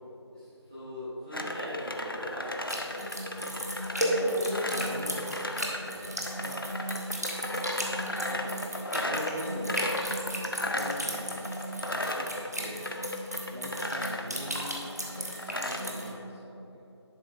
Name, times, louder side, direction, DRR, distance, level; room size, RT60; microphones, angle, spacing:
voice 1, 0.3-3.4, left 1 dB, 15° right, -15 dB, 1.3 m, -41 dB
sound 1, 1.3-15.9, left 1 dB, 50° left, 0.6 m, -35 dB
sound 2, 2.7-16.1, equal, 35° right, 1.0 m, -35 dB
voice 2, 4.2-6.6 6.9-8.6 8.9-10.1 10.4-11.5 11.9-12.9 13.5-16.8, equal, 60° right, -5 dB, 1.1 m, -42 dB
10.5 x 5.9 x 3.7 m, 3.0 s
figure-of-eight pair, 180°, 15 cm